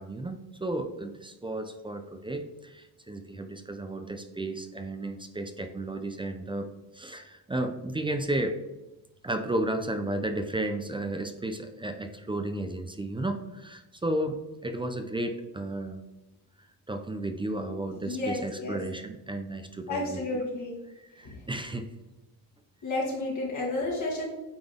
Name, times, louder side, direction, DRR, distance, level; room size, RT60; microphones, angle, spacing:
voice 1, 0.0-8.6 9.2-16.0 16.9-20.2 21.0-21.9, right 1 dB, 15° right, 7 dB, 0.5 m, -33 dB
voice 2, 18.1-18.8 19.9-20.8 21.2-21.3 22.8-24.2, left 2 dB, 50° left, -4 dB, 1.9 m, -31 dB
8.7 x 3.9 x 3.6 m, 1.0 s
cardioid pair, 110°, 39 cm